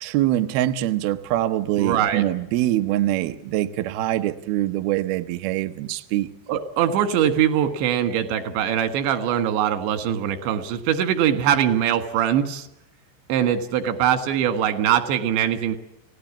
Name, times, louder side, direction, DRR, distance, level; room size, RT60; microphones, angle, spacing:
voice 1, 0.0-6.3, right 14 dB, 70° right, 8 dB, 2.7 m, -24 dB
voice 2, 1.8-2.2 6.5-12.7 13.3-15.8, right 9 dB, 90° right, 9 dB, 4.0 m, -22 dB
29.0 x 17.5 x 7.3 m, 0.86 s
omnidirectional pair, 5.0 m